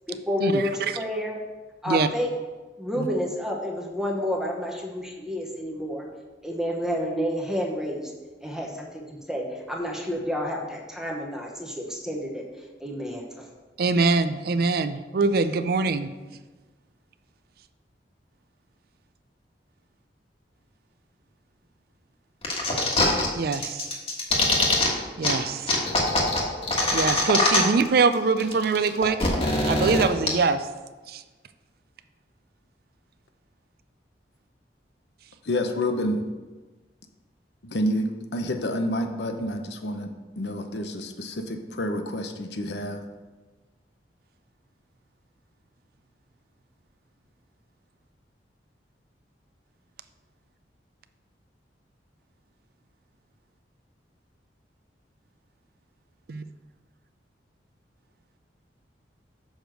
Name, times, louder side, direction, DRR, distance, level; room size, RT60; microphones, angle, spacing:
voice 1, 0.1-1.4 1.8-2.3 2.8-6.1 6.4-8.1 8.4-12.4 12.8-13.5, equal, 5° right, 0 dB, 0.9 m, -30 dB
voice 2, 13.8-16.1 23.4-23.8 25.2-25.7 26.9-29.2 29.7-30.7 31.1-31.2 56.3-56.4, right 4 dB, 55° right, 11 dB, 0.4 m, -23 dB
sound 1, 22.4-23.3 23.5-24.9 25.2-25.3 25.7-27.9 28.1-28.2 28.4-30.3, left 2 dB, 35° left, 1.4 m, -22 dB
voice 3, 35.4-36.2 37.6-43.0, left 1 dB, 70° left, 6 dB, 0.8 m, -29 dB
6.4 x 5.1 x 6.3 m, 1.3 s
head